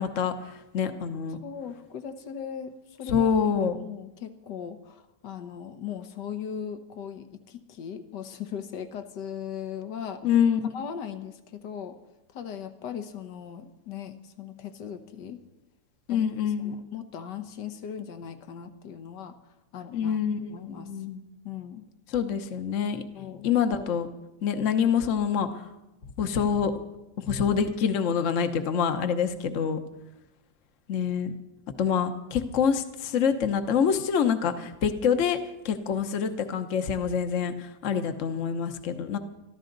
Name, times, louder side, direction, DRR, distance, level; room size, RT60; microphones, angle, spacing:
voice 1, 0.0-1.4 3.1-3.8 10.2-10.7 16.1-16.8 19.9-21.2 22.1-23.0 23.4-24.1 24.4-25.6 26.2-26.7 27.2-29.8 30.9-31.3 31.8-35.4 35.6-39.2, left 7 dB, 50° left, 8 dB, 1.3 m, -26 dB
voice 2, 1.4-3.3 3.7-10.2 10.7-12.0 12.3-15.4 16.1-16.3 16.6-19.4 19.7-20.2 20.5-20.9 21.4-21.9 23.1-23.5, left 8 dB, 80° left, 9 dB, 1.7 m, -38 dB
24.5 x 14.0 x 3.9 m, 0.97 s
omnidirectional pair, 1.9 m